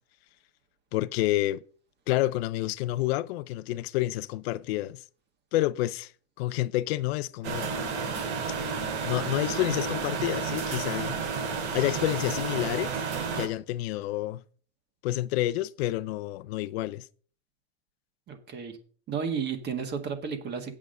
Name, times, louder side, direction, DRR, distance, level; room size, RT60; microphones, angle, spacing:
voice 1, 0.9-1.6 2.1-5.0 5.5-6.1 6.4-7.8 9.1-11.2 11.7-12.9 13.3-14.4 15.0-17.0, left 16 dB, 65° left, 0.6 m, -29 dB
sound 1, 7.4-13.5, right 5 dB, 80° right, 2.3 m, -31 dB
voice 2, 18.3-18.8 19.1-20.7, right 6 dB, 30° right, 1.7 m, -32 dB
8.3 x 6.2 x 6.5 m
supercardioid pair, 130°, 33 cm